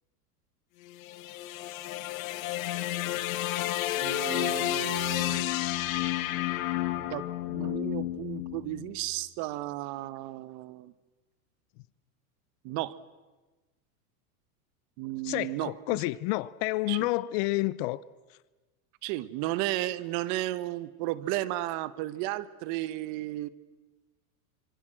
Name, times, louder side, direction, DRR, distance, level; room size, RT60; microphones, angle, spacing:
sound 1, 0.8-9.1, left 15 dB, 65° left, 1.9 m, -31 dB
voice 1, 4.0-5.5 6.9-7.2 7.5-10.9 12.6-12.9 15.0-16.0 16.9-17.1 19.0-23.5, right 16 dB, 45° right, 1.1 m, -34 dB
voice 2, 15.2-18.0, left 20 dB, 45° left, 0.7 m, -29 dB
25.5 x 25.0 x 7.6 m
supercardioid pair, 150°, 44 cm